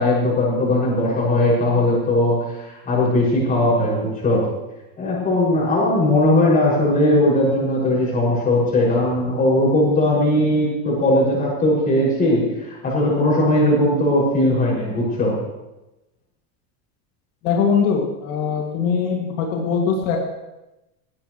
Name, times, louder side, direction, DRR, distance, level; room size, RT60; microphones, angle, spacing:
voice 1, 0.0-4.4 5.0-15.4, left 1 dB, 20° left, -5 dB, 6.2 m, -19 dB
voice 2, 17.4-20.2, left 6 dB, 65° left, 0 dB, 2.4 m, -21 dB
19.0 x 16.5 x 3.2 m, 0.99 s
cardioid pair, 175°, 45 cm